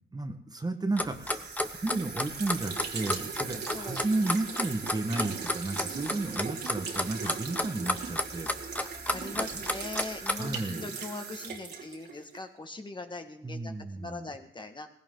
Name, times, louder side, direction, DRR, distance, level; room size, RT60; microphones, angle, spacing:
voice 1, 0.1-1.5 1.8-8.9 9.5-9.6 10.3-11.0 13.4-14.3, right 2 dB, 20° right, 6 dB, 1.6 m, -33 dB
Clock, 1.0-10.6, left 1 dB, 5° left, 1.1 m, -31 dB
sound 1, 1.0-12.4, right 5 dB, 55° right, 2.8 m, -39 dB
voice 2, 3.4-4.0 7.2-7.4 9.1-14.9, left 2 dB, 25° left, 5 dB, 1.8 m, -41 dB
18.5 x 16.0 x 4.0 m, 0.70 s
cardioid pair, 90°, 20 cm